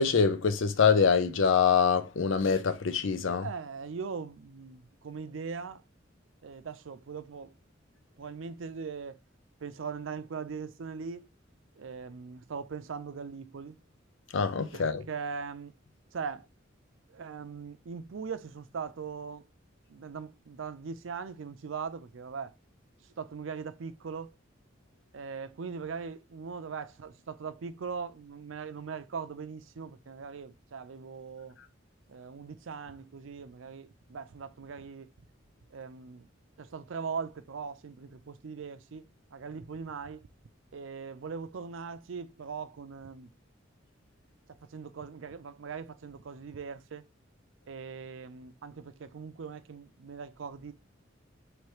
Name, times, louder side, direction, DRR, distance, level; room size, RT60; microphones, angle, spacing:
voice 1, 0.0-3.5 14.3-15.0, left 6 dB, 75° left, 0.6 m, -25 dB
voice 2, 3.4-5.8 6.4-7.5 8.2-9.2 9.6-11.3 11.8-13.8 14.7-15.7 16.1-16.5 17.1-19.5 19.9-22.5 23.2-24.4 25.1-31.6 32.1-35.1 35.7-36.3 36.6-39.0 39.3-40.2 40.7-43.3 44.7-47.0 47.7-50.7, right 5 dB, 80° right, 0.5 m, -40 dB
3.3 x 3.1 x 4.8 m
head